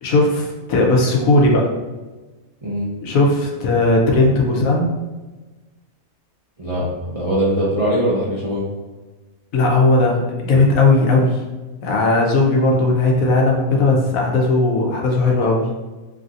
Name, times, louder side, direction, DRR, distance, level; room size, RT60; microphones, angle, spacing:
voice 1, 0.0-1.7 3.0-4.9 9.5-11.4 11.8-15.6, left 2 dB, 75° left, -1 dB, 1.1 m, -17 dB
voice 2, 6.6-8.7, equal, 45° right, -8 dB, 0.4 m, -21 dB
3.2 x 2.6 x 2.5 m, 1.2 s
omnidirectional pair, 1.5 m